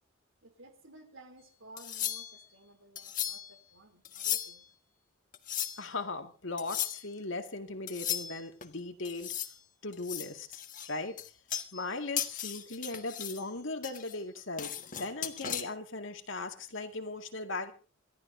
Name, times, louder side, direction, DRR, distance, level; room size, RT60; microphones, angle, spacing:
voice 1, 0.4-4.7, right 2 dB, 75° right, 3.5 m, -55 dB
sound 1, 1.8-2.5 3.0-3.5 4.0-4.7 5.3-5.9 6.6-7.0 7.9-8.7 9.0-9.6 9.9-11.9 12.2-13.4 13.8-15.6, left 10 dB, 40° left, 1.5 m, -36 dB
voice 2, 5.8-9.3 9.8-11.2 11.7-17.7, left 2 dB, 65° left, 2.2 m, -38 dB
28.5 x 14.0 x 2.7 m
head